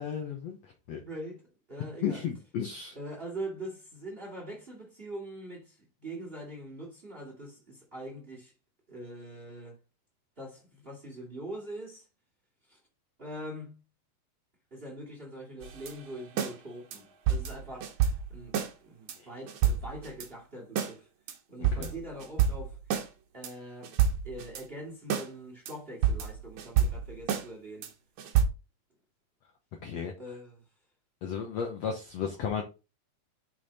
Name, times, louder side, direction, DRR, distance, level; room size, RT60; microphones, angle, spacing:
voice 1, 0.0-1.0 2.0-3.0 19.2-19.3 21.6-21.9 29.8-30.1 31.2-32.6, left 7 dB, 70° left, 1.7 m, -34 dB
voice 2, 1.0-1.4 1.7-2.2 2.9-8.5 8.9-9.8 10.4-12.1 12.7-12.8 13.2-13.8 14.7-21.1 21.5-22.8 23.3-24.0 24.2-27.9 30.2-30.6, right 1 dB, 20° right, 2.1 m, -43 dB
sound 1, 15.6-16.5 16.9-17.0 17.3-18.7 19.1-19.2 19.5-20.3 20.8-20.9 21.3-21.4 21.6-23.1 23.4-23.5 23.8-24.6 25.1-25.3 25.7-25.8 26.0-27.5 27.8-27.9 28.2-28.5, right 8 dB, 65° right, 2.1 m, -29 dB
6.3 x 6.2 x 4.1 m
omnidirectional pair, 4.2 m